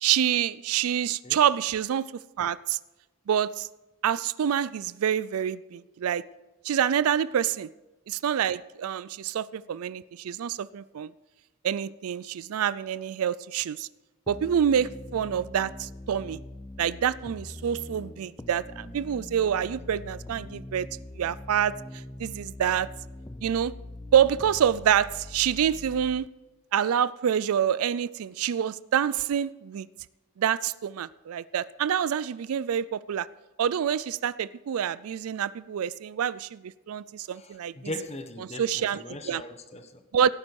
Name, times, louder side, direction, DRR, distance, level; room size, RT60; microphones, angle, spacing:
voice 1, 0.0-2.1 2.4-2.8 3.3-3.7 4.0-6.2 6.6-7.7 8.1-11.1 11.6-13.9 14.3-16.4 16.8-20.9 21.2-21.8 22.2-22.9 23.4-23.7 24.1-26.3 26.7-29.9 30.4-33.3 33.6-37.7 38.6-39.4 40.1-40.3, right 9 dB, 85° right, 0.4 m, -27 dB
sound 1, 14.3-26.3, left 1 dB, 15° left, 0.4 m, -43 dB
voice 2, 37.3-40.0, left 1 dB, 30° left, 1.1 m, -39 dB
17.0 x 9.6 x 4.7 m
head